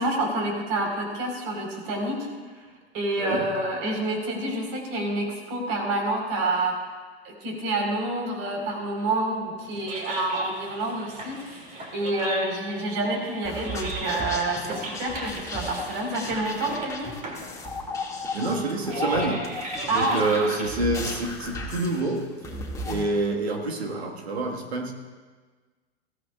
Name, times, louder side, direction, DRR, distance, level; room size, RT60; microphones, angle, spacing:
voice 1, 0.0-2.3 2.9-6.8 7.2-11.6 11.9-17.1 19.9-20.5, right 2 dB, 45° right, 1 dB, 4.5 m, -28 dB
voice 2, 3.2-3.5 18.3-24.9, right 2 dB, 75° right, 2 dB, 1.8 m, -28 dB
sound 1, 9.6-21.8, right 1 dB, 25° right, 2.7 m, -38 dB
sound 2, 13.4-23.1, left 2 dB, 10° left, 2.1 m, -35 dB
21.0 x 15.5 x 2.4 m, 1.4 s
figure-of-eight pair, 95°, 32 cm